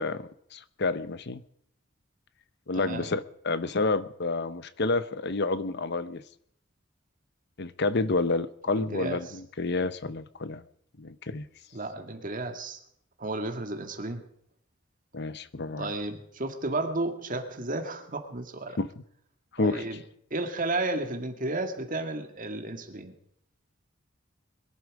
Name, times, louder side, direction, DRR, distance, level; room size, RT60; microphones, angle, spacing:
voice 1, 0.0-1.4 2.7-6.2 7.6-10.6 11.0-11.5 15.1-15.9 18.8-18.9 19.5-19.8, left 3 dB, 60° left, 0.9 m, -29 dB
voice 2, 2.7-3.1 8.7-9.4 11.7-12.8 13.2-14.2 15.8-18.8 19.6-20.0 20.3-23.2, right 2 dB, 45° right, 2.0 m, -33 dB
22.5 x 12.0 x 4.9 m
head